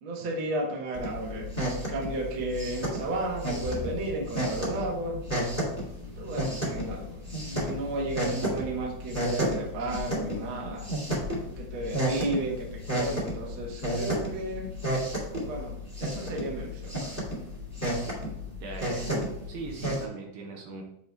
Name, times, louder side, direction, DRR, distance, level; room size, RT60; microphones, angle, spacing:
voice 1, 0.0-5.2 6.0-10.9 11.4-14.7 15.4-17.4, right 2 dB, 60° right, -2 dB, 1.4 m, -34 dB
sound 1, 0.9-20.0, equal, 10° right, 0.7 m, -32 dB
sound 2, 3.6-9.6, left 5 dB, 75° left, 2.6 m, -46 dB
voice 2, 18.6-19.2 19.5-20.8, right 3 dB, 75° right, 0 dB, 2.6 m, -40 dB
7.8 x 3.0 x 4.5 m, 0.73 s
omnidirectional pair, 4.5 m